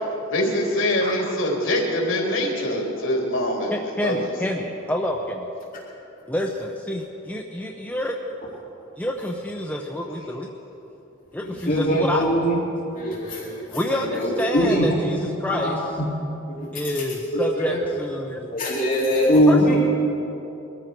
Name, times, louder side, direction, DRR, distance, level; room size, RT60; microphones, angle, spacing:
voice 1, 0.3-3.7 4.0-4.2 13.9-14.1, left 1 dB, 75° left, -1 dB, 3.6 m, -24 dB
voice 2, 3.7-5.5 6.3-8.2 9.0-10.5 11.3-12.3 13.6-16.0 16.7-18.6 19.1-19.8, left 1 dB, 10° left, 1 dB, 0.8 m, -28 dB
voice 3, 11.7-12.6 12.9-13.5 14.2-14.9 15.5-16.1 17.3-17.8 18.5-19.8, equal, 45° left, -5 dB, 2.5 m, -21 dB
22.5 x 14.0 x 4.6 m, 2.9 s
head